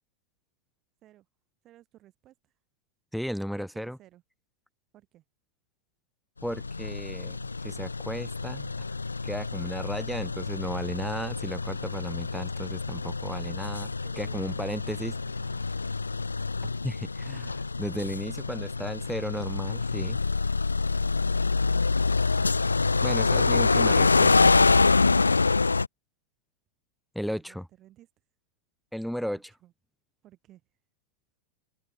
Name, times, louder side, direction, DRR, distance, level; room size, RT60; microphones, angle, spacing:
voice 1, 1.6-2.5 3.6-4.2 4.9-5.2 13.8-15.6 27.2-28.1 29.3-29.7 30.2-30.6, right 14 dB, 35° right, 5.9 m, -57 dB
voice 2, 3.1-4.0 6.4-8.7 9.2-13.9 14.2-15.1 16.8-20.2 23.0-24.3 27.1-27.7 28.9-29.4, equal, ahead, 0.6 m, -34 dB
sound 1, 6.4-25.9, left 4 dB, 80° left, 0.3 m, -26 dB
figure-of-eight pair, 90°, 0 cm